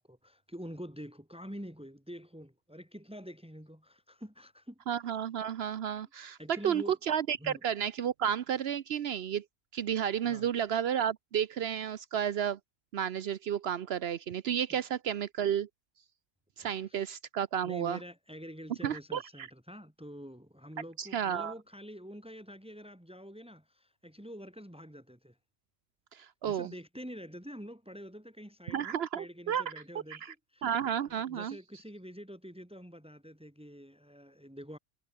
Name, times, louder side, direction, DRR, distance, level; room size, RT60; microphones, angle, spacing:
voice 1, 0.0-4.8 6.4-7.0 7.4-7.6 10.3-10.5 14.7-14.8 16.6-17.1 17.6-25.4 26.4-30.7 31.3-34.8, equal, 5° right, 3.4 m, -47 dB
voice 2, 4.9-9.4 9.7-12.6 12.9-15.7 16.6-18.0 18.8-19.5 21.0-21.5 26.1-26.7 28.7-29.6 30.1-30.3 30.6-31.6, right 9 dB, 70° right, 0.9 m, -32 dB
omnidirectional pair, 1.1 m